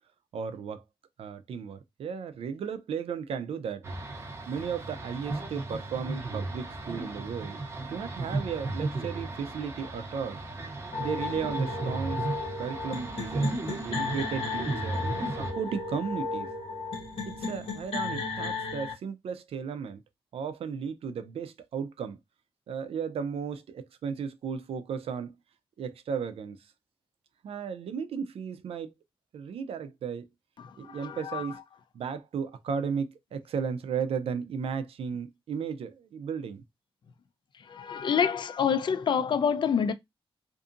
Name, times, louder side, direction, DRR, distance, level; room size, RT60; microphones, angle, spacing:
voice 1, 0.3-0.8 1.2-3.8 4.5-7.6 7.9-10.4 11.0-12.3 12.6-16.5 17.3-20.0 20.3-22.2 22.7-25.4 25.8-26.6 27.4-28.9 29.3-30.3 30.8-31.6 31.9-36.6, right 6 dB, 80° right, 0.4 m, -35 dB
sound 1, 3.8-15.5, right 2 dB, 25° right, 0.6 m, -35 dB
sound 2, 10.9-18.9, left 3 dB, 70° left, 0.8 m, -35 dB
voice 2, 30.6-31.5 37.6-39.9, left 7 dB, 55° left, 0.4 m, -27 dB
2.6 x 2.5 x 2.4 m
wide cardioid pair, 155°, 10 cm